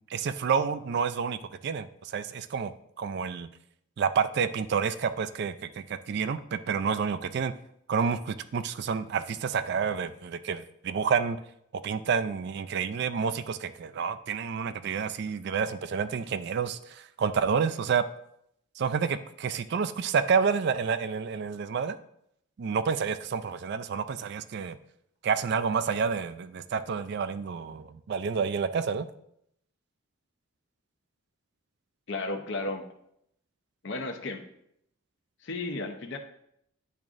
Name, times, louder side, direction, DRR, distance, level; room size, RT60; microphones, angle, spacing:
voice 1, 0.1-2.7 3.0-3.5 4.0-7.5 7.9-11.4 11.8-18.0 18.8-22.0 22.6-24.8 25.2-29.1, right 6 dB, 50° right, 12 dB, 0.3 m, -29 dB
voice 2, 32.1-32.8 33.8-34.4 35.4-36.2, left 2 dB, 55° left, 5 dB, 0.7 m, -33 dB
10.5 x 3.6 x 2.5 m, 0.75 s
head